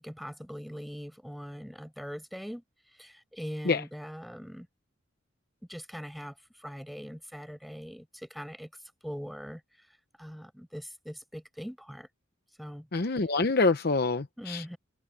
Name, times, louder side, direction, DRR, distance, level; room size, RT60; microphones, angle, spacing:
voice 1, 0.0-2.6 3.0-4.7 5.7-8.7 9.0-9.6 10.2-12.1 12.6-12.9 14.4-14.8, equal, ahead, 5.2 m, -41 dB
voice 2, 12.9-14.7, left 3 dB, 50° left, 0.8 m, -26 dB
head